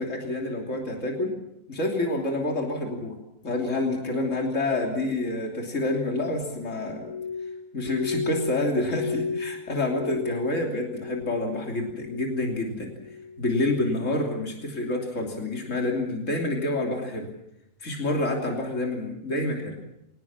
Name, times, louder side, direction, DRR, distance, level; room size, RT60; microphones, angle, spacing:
voice 1, 0.0-1.4 1.7-3.2 3.4-7.1 7.7-12.9 13.4-17.3 17.8-19.8, left 2 dB, 60° left, 1 dB, 3.5 m, -28 dB
Glass, 6.9-11.5 11.8-12.5 12.9-13.4 14.0-14.3, left 5 dB, 85° left, 4.9 m, -34 dB
24.0 x 19.0 x 7.3 m, 0.82 s
omnidirectional pair, 1.4 m